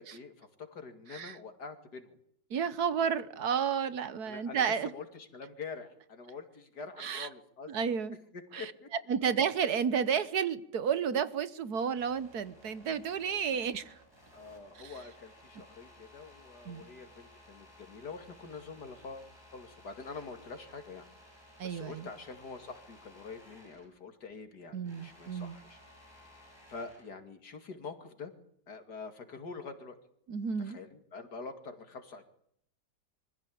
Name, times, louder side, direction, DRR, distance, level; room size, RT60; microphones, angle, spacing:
voice 1, 0.0-2.2 4.2-8.0 8.3-8.9 9.2-9.3 14.3-25.8 26.7-28.3 28.7-30.0 30.6-32.2, left 4 dB, 65° left, 2.9 m, -46 dB
voice 2, 2.5-4.9 7.0-7.3 7.7-8.2 8.5-8.7 9.1-13.9 14.8-14.9 16.7-16.9 21.6-22.1 24.7-25.6 30.3-30.8, right 7 dB, 65° right, 1.5 m, -31 dB
sound 1, 11.9-24.0 24.3-27.2, left 1 dB, 15° right, 7.4 m, -57 dB
25.0 x 15.0 x 8.7 m
omnidirectional pair, 1.9 m